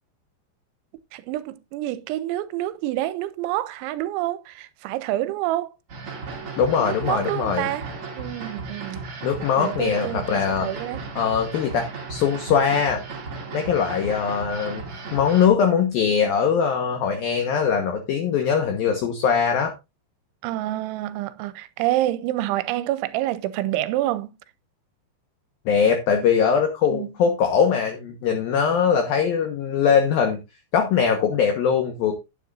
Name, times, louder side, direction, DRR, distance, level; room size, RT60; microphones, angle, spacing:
voice 1, 1.1-5.7 6.8-7.9 8.2-9.0 9.6-11.0 20.4-24.3 26.9-27.1, right 15 dB, 85° right, 3.1 m, -27 dB
sound 1, 5.9-15.5, right 4 dB, 40° right, 2.2 m, -35 dB
voice 2, 6.6-7.7 9.2-10.8 11.2-13.0 13.5-14.8 15.1-19.7 25.7-30.4 30.7-32.1, left 7 dB, 65° left, 2.6 m, -21 dB
11.0 x 9.9 x 2.6 m
omnidirectional pair, 5.4 m